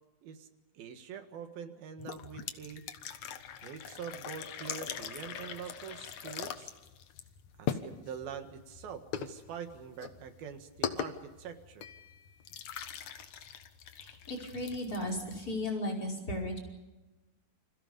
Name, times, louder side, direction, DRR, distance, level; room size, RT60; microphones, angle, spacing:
voice 1, 0.8-2.9 3.6-6.7 7.6-11.9, right 7 dB, 85° right, 7 dB, 3.6 m, -44 dB
sound 1, 2.0-15.7, left 8 dB, 60° left, 2.4 m, -42 dB
voice 2, 14.0-16.6, left 1 dB, 25° left, 3 dB, 5.6 m, -35 dB
29.5 x 26.5 x 5.3 m, 1.1 s
omnidirectional pair, 4.1 m